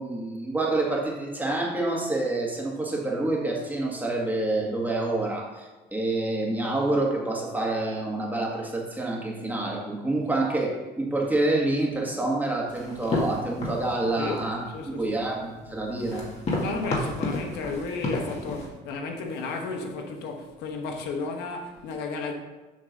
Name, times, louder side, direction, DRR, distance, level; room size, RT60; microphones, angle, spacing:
voice 1, 0.0-14.6 14.9-16.3, right 2 dB, 10° right, 1.8 m, -27 dB
sound 1, 12.7-18.7, left 2 dB, 40° left, 2.0 m, -32 dB
voice 2, 14.2-14.5 14.7-15.2 16.6-22.3, left 4 dB, 85° left, 1.1 m, -33 dB
7.8 x 3.7 x 6.6 m
cardioid pair, 110°, 17 cm